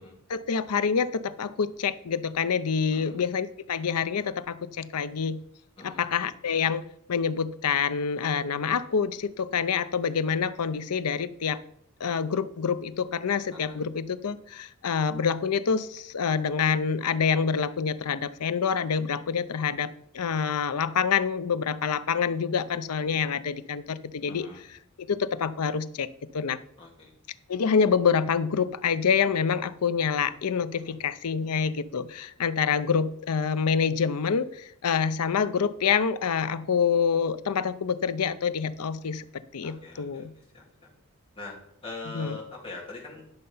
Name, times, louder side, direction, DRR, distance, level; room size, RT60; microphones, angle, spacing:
voice 1, 0.3-5.4 5.8-6.8 7.1-11.6 12.0-24.5 25.1-26.1 26.3-26.6 27.5-39.2 39.5-40.3 42.1-42.4, left 6 dB, 80° left, 15 dB, 0.6 m, -27 dB
voice 2, 24.3-24.6 26.8-27.1 30.7-30.9 39.6-40.2 40.5-40.9 41.3-41.6 41.8-43.2, left 3 dB, 25° left, -5 dB, 3.3 m, -42 dB
10.5 x 6.7 x 5.5 m, 0.71 s
head